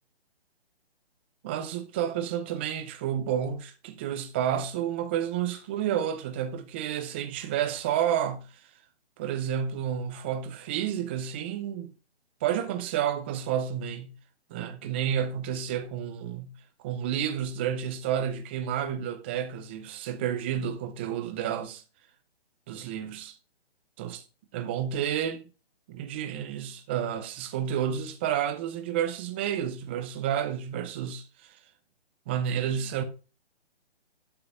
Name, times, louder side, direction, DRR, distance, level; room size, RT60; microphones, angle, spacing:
voice 1, 1.4-8.7 9.2-11.9 12.4-14.1 14.5-16.6 16.8-21.8 22.7-23.4 24.0-24.2 24.5-25.4 25.9-31.6 32.3-33.0, right 9 dB, 10° right, 0.5 m, -30 dB
11.5 x 5.6 x 5.5 m
hypercardioid pair, 150°, 32 cm